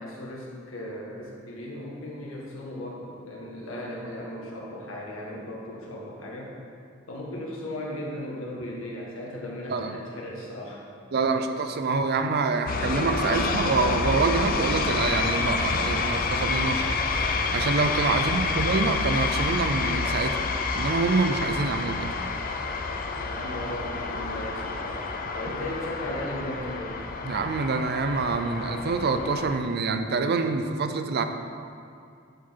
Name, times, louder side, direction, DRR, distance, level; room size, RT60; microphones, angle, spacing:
voice 1, 0.0-6.5 7.1-10.8 18.1-18.7 23.1-27.0, left 1 dB, 80° left, -3 dB, 1.6 m, -37 dB
voice 2, 9.7-10.0 11.1-17.0 17.5-20.4 20.7-22.1 27.2-31.2, right 4 dB, 50° right, 7 dB, 0.5 m, -26 dB
sound 1, 12.7-29.6, left 4 dB, 45° left, 0.5 m, -28 dB
11.0 x 4.8 x 4.6 m, 2.4 s
head